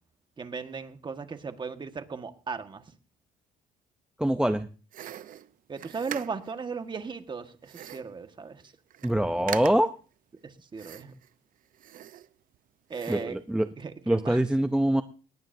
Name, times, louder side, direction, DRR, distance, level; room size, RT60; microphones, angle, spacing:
voice 1, 0.4-2.8 5.7-8.6 10.4-11.1 12.9-13.4 13.8-14.4, right 5 dB, 25° right, 8 dB, 1.5 m, -37 dB
voice 2, 4.2-4.7 9.0-9.9 13.1-13.7 14.1-15.0, right 1 dB, 5° right, 9 dB, 0.6 m, -24 dB
sound 1, 4.9-6.6 7.6-8.2 8.6-8.7 8.9-9.2 9.5-10.0 10.8-11.3 11.7-12.6 12.9-13.4, right 11 dB, 55° right, 0.7 m, -41 dB
19.0 x 18.5 x 2.7 m, 0.37 s
cardioid pair, 110°, 17 cm